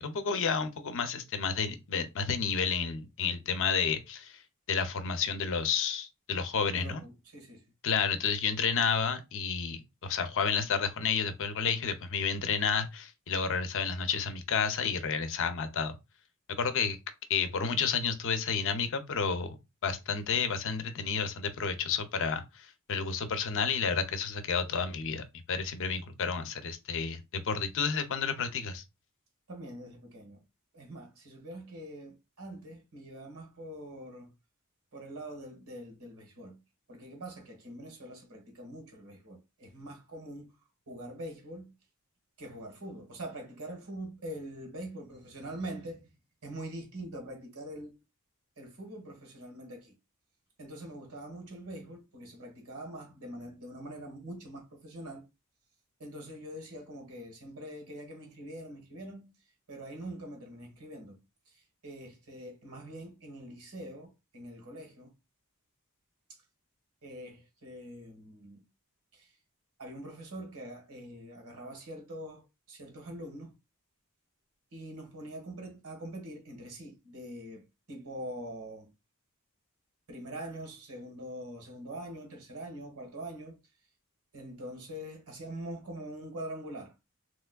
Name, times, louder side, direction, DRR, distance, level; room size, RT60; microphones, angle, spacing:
voice 1, 0.0-4.4 4.7-7.1 7.8-15.9 16.6-17.0 17.3-28.8, left 6 dB, 60° left, 0.6 m, -31 dB
voice 2, 6.8-7.6 29.5-30.4 30.7-34.3 34.9-36.6 36.9-40.5 40.9-41.7 42.4-46.0 46.4-47.9 48.6-49.9 50.6-55.2 56.0-59.3 59.7-61.2 61.5-65.1 66.3-66.4 67.0-68.6 69.1-69.3 69.8-73.5 74.7-77.6 77.9-78.9 80.1-83.6 84.3-86.9, right 1 dB, 75° right, 1.4 m, -44 dB
3.4 x 3.0 x 2.2 m
head